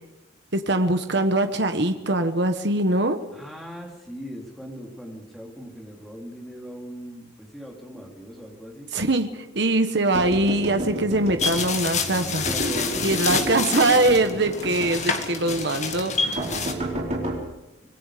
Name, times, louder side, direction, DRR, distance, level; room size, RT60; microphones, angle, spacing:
voice 1, 0.5-3.2 8.9-12.4 13.0-16.4, right 2 dB, 55° right, 7 dB, 1.4 m, -22 dB
voice 2, 3.3-8.9 11.9-14.2 17.0-17.4, equal, ahead, 0 dB, 3.6 m, -39 dB
sound 1, 10.1-11.9 12.4-13.7 14.1-15.0 15.5-15.7 16.4-17.4, right 1 dB, 35° right, 4.5 m, -31 dB
sound 2, 11.4-16.7, left 5 dB, 35° left, 2.0 m, -28 dB
26.0 x 20.5 x 5.2 m, 1.0 s
head